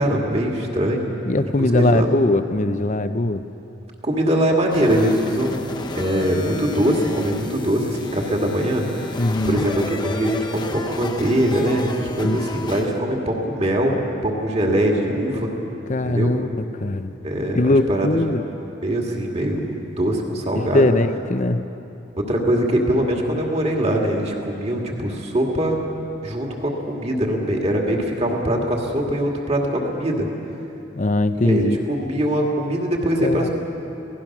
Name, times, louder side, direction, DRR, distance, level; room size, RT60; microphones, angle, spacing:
voice 1, 0.0-1.1 1.6-2.1 4.0-5.7 5.9-14.0 14.2-15.5 16.0-16.3 17.2-18.1 18.8-20.8 22.2-25.8 26.2-30.3 31.3-33.5, right 1 dB, 30° right, 0 dB, 2.3 m, -22 dB
voice 2, 1.3-3.4 9.0-9.6 12.2-12.4 15.9-17.1 17.5-18.4 20.5-21.7 30.9-31.8 33.2-33.5, left 2 dB, 40° left, 10 dB, 0.7 m, -21 dB
sound 1, 4.7-13.0, left 2 dB, 20° left, 1.0 m, -33 dB
28.0 x 17.5 x 6.1 m, 2.9 s
head